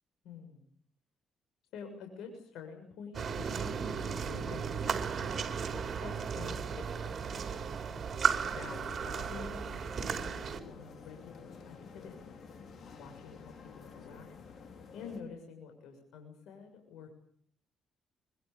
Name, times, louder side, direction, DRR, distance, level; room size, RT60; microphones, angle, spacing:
voice 1, 0.2-0.7 1.7-7.6 8.6-12.3 13.0-14.3 14.9-17.1, left 5 dB, 85° left, 4 dB, 6.9 m, -49 dB
sound 1, 3.1-10.6, right 6 dB, 50° right, 5.6 m, -35 dB
sound 2, 8.2-15.2, left 5 dB, 55° left, 5.6 m, -51 dB
26.0 x 24.5 x 7.0 m, 0.64 s
cardioid pair, 90°, 0 cm